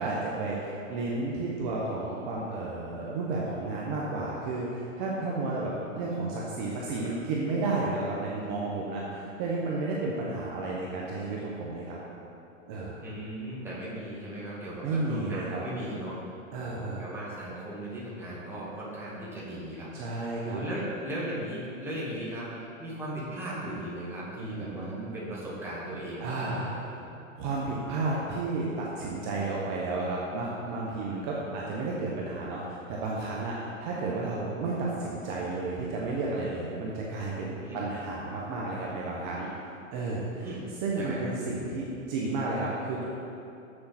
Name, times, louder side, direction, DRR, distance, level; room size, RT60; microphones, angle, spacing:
voice 1, 0.0-12.0 12.7-13.0 14.8-15.6 16.5-17.0 19.9-20.6 24.4-25.1 26.2-26.7 27.4-39.5 39.9-40.5 40.8-43.0, right 3 dB, 40° right, -4 dB, 1.1 m, -32 dB
voice 2, 10.0-10.3 13.0-16.2 16.5-27.1 37.6-37.8 40.4-40.7 40.9-41.2, right 1 dB, 5° right, -8 dB, 1.8 m, -37 dB
7.4 x 6.6 x 4.3 m, 2.7 s
hypercardioid pair, 135°, 39 cm